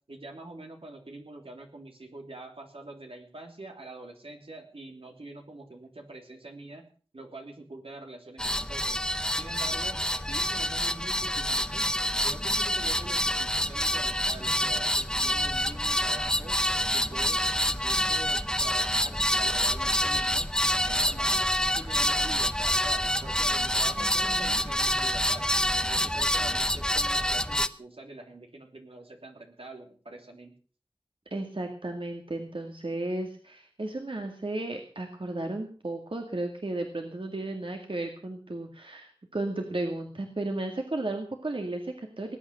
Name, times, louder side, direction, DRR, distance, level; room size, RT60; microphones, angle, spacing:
voice 1, 0.1-9.0 9.3-11.9 12.2-16.6 16.9-20.5 20.8-21.4 21.7-25.5 25.8-30.6, right 2 dB, 85° right, 3 dB, 3.2 m, -45 dB
sound 1, 8.4-27.7, equal, 10° left, 0.8 m, -27 dB
voice 2, 24.0-24.7 31.3-42.4, right 2 dB, 65° right, 3 dB, 2.1 m, -34 dB
19.5 x 8.9 x 6.5 m, 0.41 s
wide cardioid pair, 45°, 9 cm